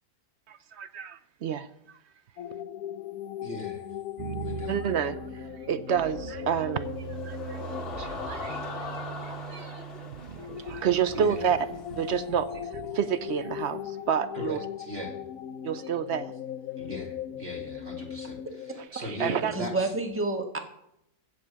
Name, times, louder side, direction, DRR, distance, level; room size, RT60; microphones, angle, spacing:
voice 1, 0.5-1.7 4.7-7.0 7.3-7.6 8.0-9.7 10.4-11.7 12.0-14.6 15.6-16.3 19.0-19.5, right 8 dB, 60° right, 13 dB, 0.7 m, -29 dB
sound 1, 2.4-9.5 10.4-18.9, left 10 dB, 70° left, 1.0 m, -39 dB
voice 2, 3.4-3.8 4.4-4.8 11.1-11.4 14.3-15.2 16.8-18.4 18.7-19.9, equal, 40° right, -1 dB, 2.7 m, -38 dB
sound 2, 4.2-14.3, right 10 dB, 90° right, 0.4 m, -42 dB
sound 3, 6.8-12.3, left 4 dB, 40° left, 1.6 m, -41 dB
voice 3, 19.5-20.6, right 2 dB, 10° right, 4 dB, 1.3 m, -29 dB
15.0 x 5.3 x 8.1 m, 0.77 s
omnidirectional pair, 1.7 m